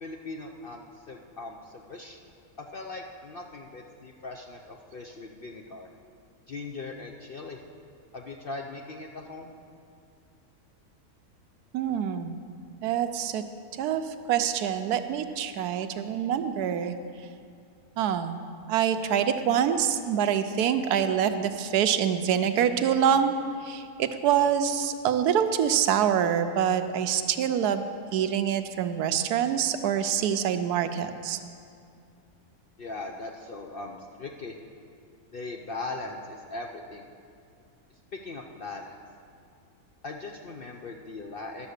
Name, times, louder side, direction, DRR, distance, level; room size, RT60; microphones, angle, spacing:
voice 1, 0.0-2.2 2.6-5.9 6.5-7.6 8.1-9.5 32.8-34.5 35.3-37.1 38.1-38.9 40.0-41.7, left 3 dB, 60° left, 1 dB, 0.6 m, -39 dB
voice 2, 11.7-12.4 12.8-13.4 13.8-16.9 18.0-18.4 18.7-23.4 23.6-27.8 28.1-31.4, right 8 dB, 85° right, 9 dB, 1.1 m, -25 dB
11.5 x 6.9 x 6.5 m, 2.4 s
omnidirectional pair, 1.6 m